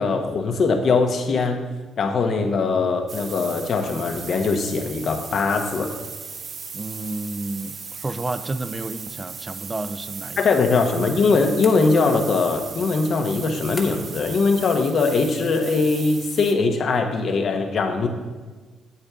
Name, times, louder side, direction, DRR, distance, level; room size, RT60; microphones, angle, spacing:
voice 1, 0.0-1.6 2.0-5.9 10.4-18.1, left 4 dB, 55° left, 4 dB, 1.2 m, -21 dB
sound 1, 3.1-16.5, right 5 dB, 50° right, 0.8 m, -37 dB
voice 2, 6.7-10.6, right 2 dB, 20° right, 12 dB, 0.5 m, -31 dB
sound 2, 11.6-12.4 13.8-14.3, left 2 dB, 25° left, 1.0 m, -40 dB
8.7 x 8.2 x 3.6 m, 1.3 s
cardioid pair, 90°, 0 cm